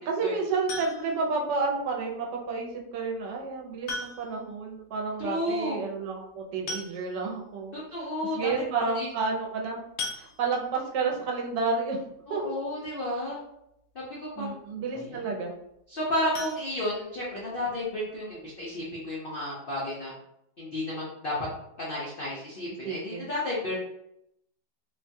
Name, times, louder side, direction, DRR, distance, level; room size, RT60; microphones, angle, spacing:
voice 1, 0.1-7.7 8.3-9.8 10.1-12.0 12.3-12.4 14.4-15.5 22.8-23.3, right 4 dB, 80° right, 0 dB, 1.3 m, -30 dB
sound 1, 0.7-1.3 2.8-2.9 3.9-4.5 4.8-4.9 5.2-5.3 6.3-6.4 6.7-7.4 7.9-8.0 8.4-8.6 10.0-10.8 16.3-17.5 17.9-18.0 18.4-18.5 18.9-19.0, left 3 dB, 85° left, 1.3 m, -38 dB
voice 2, 5.2-5.8 7.7-9.1 12.3-13.4 13.9-14.6 14.9-15.3 15.9-20.1 20.6-21.3 21.8-23.7, left 1 dB, 70° left, -6 dB, 0.5 m, -32 dB
3.1 x 2.2 x 2.6 m, 0.79 s
omnidirectional pair, 1.9 m